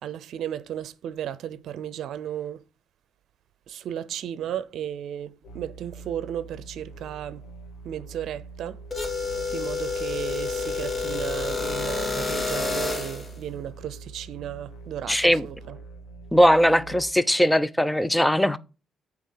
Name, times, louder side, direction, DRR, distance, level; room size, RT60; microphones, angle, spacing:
voice 1, 0.0-2.6 3.7-7.4 7.8-8.8 9.5-15.8, right 10 dB, 75° right, 0.6 m, -34 dB
sound 1, 5.4-17.1, right 2 dB, 80° left, 1.9 m, -43 dB
sound 2, 8.9-13.3, left 4 dB, 30° left, 2.1 m, -29 dB
voice 2, 15.1-15.4 16.3-18.6, equal, 5° left, 0.6 m, -19 dB
8.8 x 3.6 x 6.6 m
cardioid pair, 90°, 0 cm